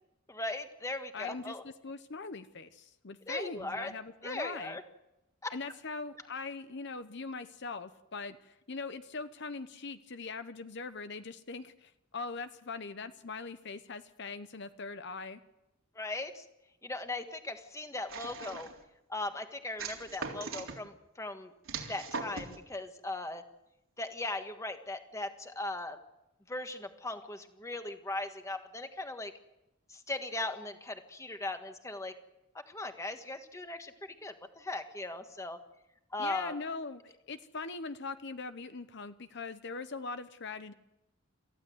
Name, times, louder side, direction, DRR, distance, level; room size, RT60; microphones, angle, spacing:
voice 1, 0.3-1.6 3.3-3.9 4.2-4.8 5.4-5.5 15.9-16.4 16.8-18.7 19.1-21.5 21.9-23.4 24.0-26.0 26.5-29.3 29.9-32.1 32.7-35.6 36.1-36.5, left 2 dB, 15° left, 7 dB, 1.5 m, -38 dB
voice 2, 1.1-4.8 5.5-15.4 36.2-40.7, left 4 dB, 60° left, 11 dB, 0.9 m, -41 dB
sound 1, 18.1-18.8 19.8-20.8 21.7-22.6, right 4 dB, 90° right, 3.6 m, -40 dB
28.0 x 15.0 x 8.0 m, 0.91 s
head